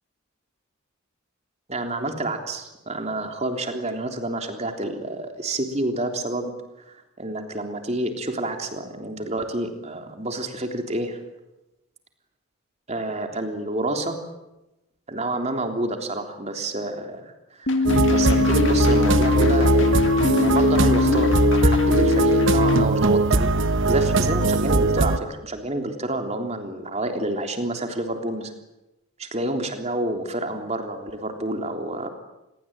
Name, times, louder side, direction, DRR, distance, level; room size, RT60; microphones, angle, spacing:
voice 1, 1.7-6.5 6.9-11.2 12.9-14.2 15.1-23.5 23.9-28.5 29.2-32.1, right 1 dB, 30° right, 4 dB, 3.5 m, -29 dB
sound 1, 17.7-22.8, left 4 dB, 55° left, 2.1 m, -21 dB
sound 2, 17.8-25.2, right 2 dB, 55° right, 1.1 m, -20 dB
27.5 x 21.5 x 9.0 m, 0.97 s
head